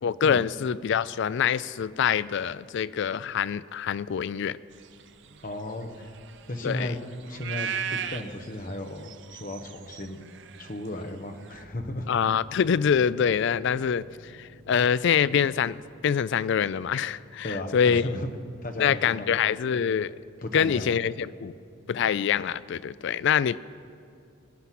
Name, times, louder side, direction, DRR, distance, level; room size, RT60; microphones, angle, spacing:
voice 1, 0.0-4.6 6.6-6.9 12.1-18.1 18.8-20.1 20.5-21.6 21.9-23.6, left 7 dB, 55° left, 18 dB, 0.3 m, -25 dB
sound 1, 4.8-11.6, right 7 dB, 55° right, 0.6 m, -38 dB
voice 2, 5.4-6.1 6.5-7.0 7.3-10.2 10.6-12.1 17.4-18.3 18.6-19.4 20.4-21.0, left 1 dB, 40° left, 5 dB, 1.1 m, -35 dB
sound 2, 11.4-23.0, left 1 dB, 30° right, 3.5 m, -55 dB
21.0 x 9.7 x 5.9 m, 2.4 s
head